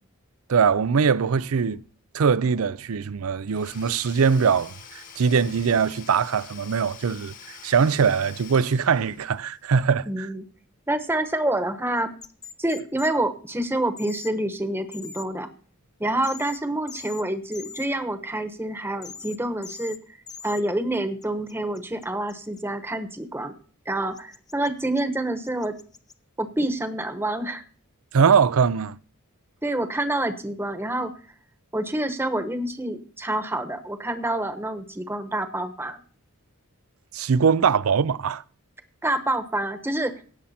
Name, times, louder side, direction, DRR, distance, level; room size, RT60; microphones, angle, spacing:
voice 1, 0.5-1.8 2.1-10.3 28.1-29.0 37.1-38.4, right 6 dB, 75° right, 0.5 m, -22 dB
Domestic sounds home sounds / Tools, 3.5-9.6, left 7 dB, 35° left, 1.3 m, -46 dB
voice 2, 10.1-10.4 10.9-12.1 12.6-15.5 16.0-20.0 20.4-23.5 23.9-25.7 26.4-27.6 29.6-31.1 31.7-36.0 39.0-40.1, right 1 dB, 10° right, 1.1 m, -27 dB
sound 1, 12.2-13.1 14.0-14.3 14.9-15.3 16.2-16.6 16.9-17.2 17.5-17.9 19.0-19.4 19.6-20.0 20.3-20.6 21.2-22.6 24.2-25.0 25.4-26.1, left 6 dB, 15° left, 0.6 m, -41 dB
17.0 x 7.3 x 4.2 m
head